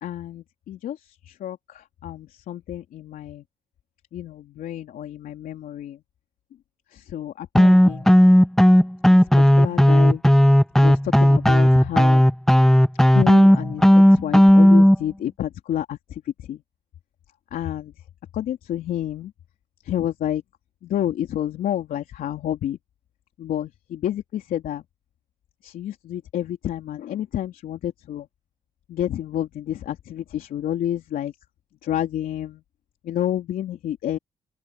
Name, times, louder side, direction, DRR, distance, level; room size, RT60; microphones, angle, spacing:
voice 1, 0.0-3.4 4.1-6.0 6.9-8.1 9.1-10.2 10.8-12.3 13.0-16.6 17.5-17.9 18.3-19.3 19.8-20.4 20.8-22.8 23.4-24.8 25.6-28.3 28.9-31.3 31.8-32.6 33.0-34.2, left 11 dB, 75° left, 3.4 m, -29 dB
sound 1, 7.5-15.0, equal, 5° left, 1.3 m, -14 dB
open air
hypercardioid pair, 45°, 15 cm